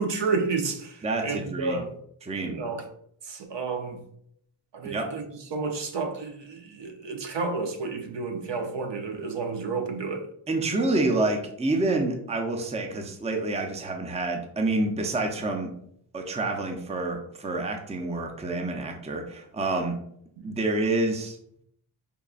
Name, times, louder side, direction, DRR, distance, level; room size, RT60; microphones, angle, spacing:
voice 1, 0.0-1.9 2.5-2.8 3.3-4.0 4.7-5.2 5.5-10.2 20.4-20.6, right 4 dB, 60° right, 0.7 m, -31 dB
voice 2, 1.0-1.9 2.2-2.5 4.8-5.1 10.5-15.7 16.1-20.0 20.4-21.4, right 2 dB, 15° right, 0.6 m, -28 dB
5.4 x 2.3 x 2.4 m
cardioid pair, 65°, 49 cm